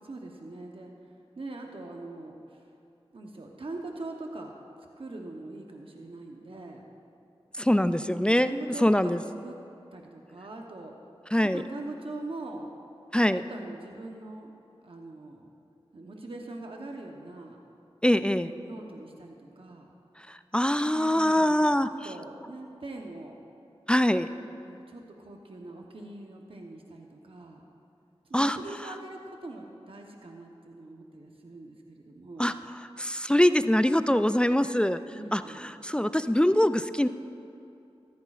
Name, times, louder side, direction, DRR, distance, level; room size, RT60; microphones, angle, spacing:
voice 1, 0.0-2.7 3.1-4.5 5.0-6.8 7.8-9.6 9.9-10.9 11.4-12.7 13.3-14.5 14.8-15.5 15.9-17.6 18.4-19.9 20.9-23.4 24.6-27.6 28.3-32.6 35.1-35.7, right 2 dB, 60° right, 1 dB, 0.9 m, -42 dB
voice 2, 7.6-8.6 8.8-9.2 11.3-11.6 13.1-13.4 18.0-18.5 20.3-21.9 23.9-24.3 28.3-28.6 32.4-32.5 33.0-35.0 35.3-37.1, left 1 dB, 10° left, 11 dB, 0.3 m, -23 dB
14.5 x 14.0 x 2.4 m, 2.7 s
wide cardioid pair, 50°, 10 cm